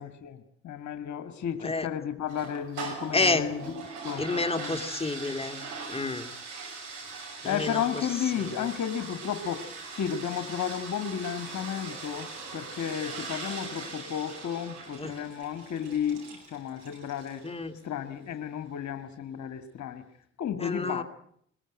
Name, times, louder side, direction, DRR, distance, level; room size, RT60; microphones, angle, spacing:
voice 1, 0.0-3.6 4.0-4.3 4.6-4.8 7.4-9.6 9.9-17.4 17.8-20.0 20.4-21.0, left 8 dB, 50° left, 9 dB, 1.9 m, -33 dB
sound 1, 2.3-17.5, right 4 dB, 70° right, 6.3 m, -41 dB
voice 2, 3.1-3.5 4.2-5.6 5.9-6.3 7.4-7.8 8.4-8.7 15.0-15.1 17.4-17.8 20.6-21.0, left 3 dB, 15° left, 7 dB, 2.6 m, -29 dB
22.0 x 21.0 x 9.0 m, 0.68 s
figure-of-eight pair, 45°, 36 cm